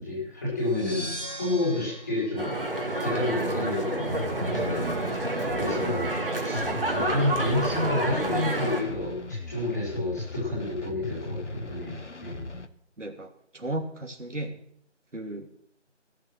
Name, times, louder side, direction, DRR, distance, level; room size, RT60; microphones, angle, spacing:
voice 1, 0.0-2.5 3.0-5.0 5.6-6.1 6.4-6.7 6.9-12.5, left 2 dB, 15° left, -8 dB, 5.4 m, -30 dB
sound 1, 0.6-3.4, equal, 25° right, 2.9 m, -40 dB
sound 2, 2.4-8.8, right 1 dB, 50° right, 2.7 m, -29 dB
sound 3, 4.1-12.7, left 3 dB, 70° left, 1.3 m, -38 dB
voice 2, 13.0-14.6 15.1-15.5, right 1 dB, 75° right, 4 dB, 2.8 m, -35 dB
17.5 x 10.5 x 6.3 m, 0.67 s
figure-of-eight pair, 175°, 36 cm